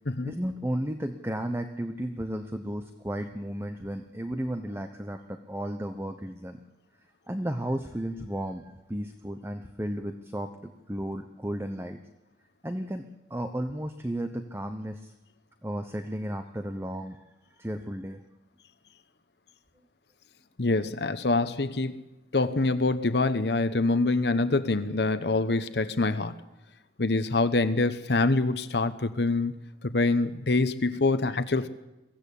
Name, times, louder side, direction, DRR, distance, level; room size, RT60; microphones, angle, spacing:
voice 1, 0.2-6.6 7.3-12.0 12.6-13.0 13.3-15.1 15.6-17.2 17.6-18.2, right 1 dB, 15° right, 7 dB, 0.9 m, -34 dB
voice 2, 20.6-22.0 22.3-26.3 27.0-29.5 29.9-31.7, left 3 dB, 70° left, 11 dB, 1.0 m, -25 dB
23.0 x 16.0 x 8.5 m, 1.0 s
head